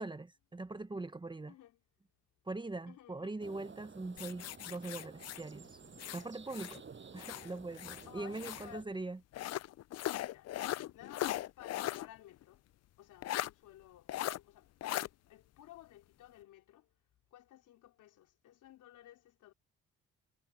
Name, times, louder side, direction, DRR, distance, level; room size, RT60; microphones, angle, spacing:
voice 1, 0.0-1.5 2.5-5.8 6.1-6.8 7.1-9.2, right 2 dB, 15° right, 1.0 m, -42 dB
voice 2, 1.5-1.8 2.9-3.4 8.1-9.0 10.2-10.5 10.9-12.6 13.0-16.9 17.3-19.5, left 13 dB, 85° left, 4.1 m, -55 dB
sound 1, 3.4-8.9, right 5 dB, 40° right, 6.4 m, -54 dB
sound 2, 4.2-6.8 7.2-8.7 9.3-12.1 12.4-12.5 13.2-13.5 14.1-14.4 14.8-15.1, left 14 dB, 55° left, 0.5 m, -39 dB
cardioid pair, 90°, 30 cm